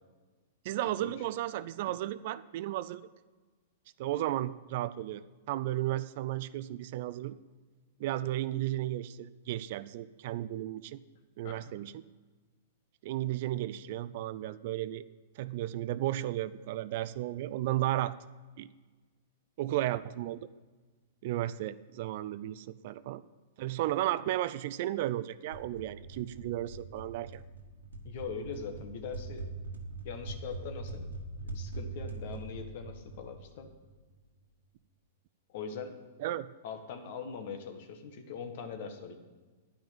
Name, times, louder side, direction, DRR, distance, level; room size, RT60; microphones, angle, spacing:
voice 1, 0.6-3.0 4.0-5.2 5.5-7.4 8.0-11.0 11.4-12.0 13.0-15.1 15.4-18.1 18.6-18.7 19.6-20.5 21.2-23.2 23.6-27.4 36.2-36.5, right 14 dB, 55° right, 16 dB, 0.4 m, -34 dB
sound 1, 25.5-34.2, right 2 dB, 85° right, 1.4 m, -43 dB
voice 2, 28.0-29.4 30.0-31.1 31.4-33.7 35.5-36.0 36.6-39.2, left 6 dB, 55° left, 6 dB, 1.5 m, -41 dB
10.0 x 6.0 x 8.6 m, 1.3 s
hypercardioid pair, 110°, 0 cm